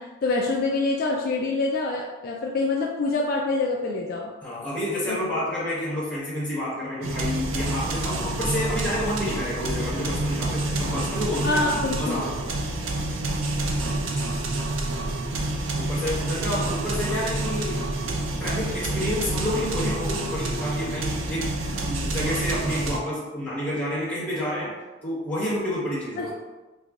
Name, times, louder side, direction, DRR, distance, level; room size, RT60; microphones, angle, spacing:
voice 1, 0.0-4.3 5.1-5.2 11.4-12.3 26.2-26.3, left 3 dB, 50° left, -1 dB, 0.3 m, -26 dB
voice 2, 4.4-12.5 15.8-17.8 18.4-24.7 25.0-26.3, left 1 dB, 10° left, -10 dB, 1.3 m, -29 dB
sound 1, 7.0-23.0, right 2 dB, 85° right, 0.5 m, -28 dB
5.5 x 2.2 x 2.4 m, 1.2 s
head